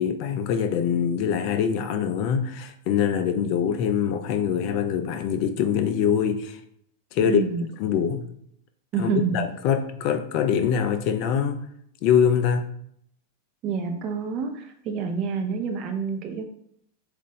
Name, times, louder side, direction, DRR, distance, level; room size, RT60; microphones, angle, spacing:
voice 1, 0.0-6.6 7.1-7.4 7.8-8.3 9.0-11.6 12.0-12.7, left 8 dB, 45° left, 0.4 m, -24 dB
voice 2, 7.2-7.6 8.9-9.4 13.6-16.4, right 5 dB, 35° right, 0.7 m, -28 dB
4.0 x 2.5 x 3.7 m
figure-of-eight pair, 90°, 0 cm